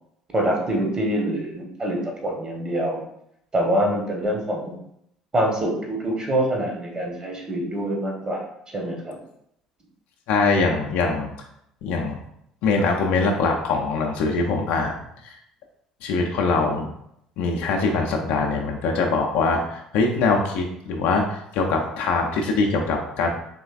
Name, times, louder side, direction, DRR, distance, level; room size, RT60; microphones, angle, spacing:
voice 1, 0.3-3.0 3.5-4.8 5.3-9.1, right 1 dB, 30° right, 0 dB, 1.1 m, -25 dB
voice 2, 10.3-11.3 11.8-12.2 12.6-14.9 15.2-15.4 16.0-16.9 17.4-23.3, left 3 dB, 60° left, 2 dB, 0.5 m, -23 dB
4.1 x 3.1 x 2.4 m, 0.75 s
figure-of-eight pair, 55°, 3 cm